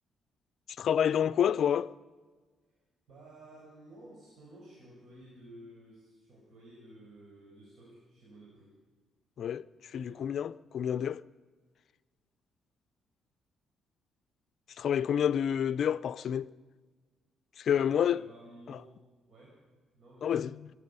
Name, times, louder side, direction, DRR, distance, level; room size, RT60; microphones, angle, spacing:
voice 1, 0.8-1.9 9.4-11.2 14.8-16.5 17.6-18.2 18.7-18.8 20.2-20.7, left 9 dB, 60° left, 0.5 m, -29 dB
voice 2, 3.1-8.8 9.9-10.3 17.7-19.0 19.3-19.6 19.9-20.4, right 1 dB, 60° right, 5.3 m, -53 dB
24.0 x 11.0 x 5.5 m
cardioid pair, 90°, 0 cm